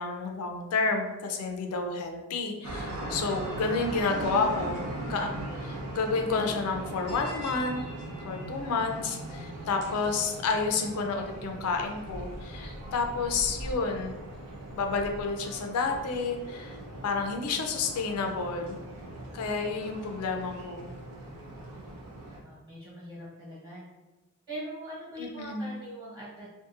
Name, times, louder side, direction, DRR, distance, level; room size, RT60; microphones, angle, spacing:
voice 1, 0.0-5.3 5.6-7.8 8.2-14.1 14.7-16.8 17.0-18.8 19.3-20.9 25.2-25.8, left 4 dB, 75° left, 4 dB, 0.4 m, -30 dB
sound 1, 2.6-22.4, right 1 dB, 80° right, 0.6 m, -39 dB
voice 2, 22.4-23.8 24.5-26.5, equal, 20° right, -8 dB, 1.1 m, -41 dB
2.7 x 2.5 x 2.4 m, 1.1 s
head